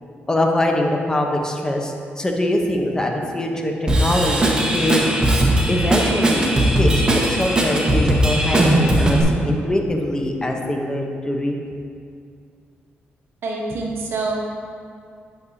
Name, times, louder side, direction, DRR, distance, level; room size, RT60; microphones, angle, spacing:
voice 1, 0.3-5.1 5.7-11.6, left 1 dB, 15° left, 2 dB, 0.9 m, -23 dB
Drum kit / Drum, 3.9-9.2, right 1 dB, 20° right, 1.2 m, -18 dB
voice 2, 13.4-14.4, right 3 dB, 70° right, -1 dB, 1.0 m, -26 dB
9.5 x 6.7 x 2.8 m, 2.3 s
cardioid pair, 90°, 4 cm